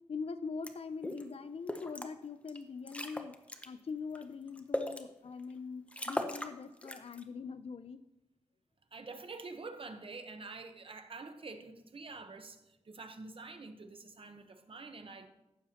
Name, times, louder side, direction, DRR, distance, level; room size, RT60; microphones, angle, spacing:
voice 1, 0.1-3.3 3.7-8.0, left 5 dB, 55° left, 13 dB, 0.5 m, -42 dB
sound 1, 0.6-0.7 1.0-1.2 1.7-2.1 2.5-2.6 2.9-3.7 4.2-5.0 5.5-5.6 5.9-6.5 6.8-7.2, left 1 dB, 10° left, 0.7 m, -38 dB
voice 2, 8.9-15.3, right 3 dB, 50° right, 7 dB, 0.9 m, -47 dB
15.0 x 6.8 x 2.9 m, 0.95 s
wide cardioid pair, 100°, 12 cm